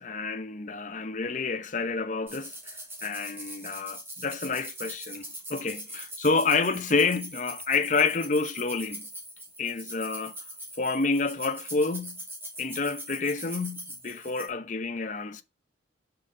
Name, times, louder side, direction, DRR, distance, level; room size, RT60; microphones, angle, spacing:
voice 1, 0.0-9.1 9.6-10.3 10.8-12.2 12.6-15.4, left 4 dB, 40° left, 0.7 m, -29 dB
sound 1, 2.3-14.5, right 1 dB, 10° right, 2.0 m, -42 dB
6.0 x 5.2 x 6.5 m
head